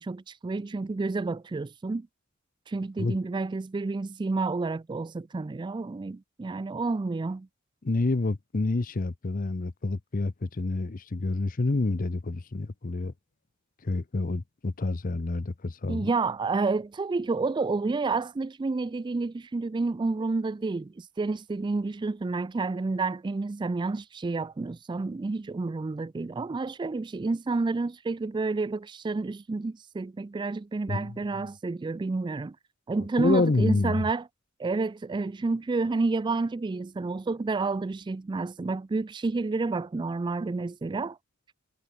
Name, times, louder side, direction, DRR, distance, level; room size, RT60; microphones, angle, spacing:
voice 1, 0.0-2.1 2.7-7.5 15.9-32.6 32.9-34.3 34.6-41.2, right 3 dB, 20° right, 0.3 m, -30 dB
voice 2, 7.8-13.1 13.8-16.1 30.9-31.1 33.2-34.0, left 3 dB, 40° left, 0.6 m, -28 dB
head